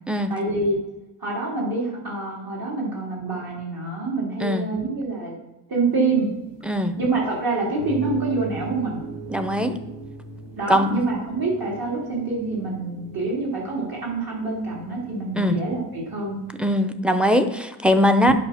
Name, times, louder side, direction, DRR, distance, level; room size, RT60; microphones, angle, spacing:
voice 1, 0.3-0.8 1.2-5.3 5.7-6.3 7.0-9.0 10.6-16.4 18.2-18.3, right 3 dB, 55° right, -3 dB, 3.1 m, -26 dB
sound 1, 5.8-16.7, right 3 dB, 85° right, 2.9 m, -40 dB
voice 2, 6.6-6.9 9.3-9.8 10.7-11.0 15.4-15.6 16.6-18.3, left 1 dB, 5° right, 8 dB, 0.6 m, -20 dB
8.6 x 6.1 x 5.7 m, 0.99 s
wide cardioid pair, 170°, 42 cm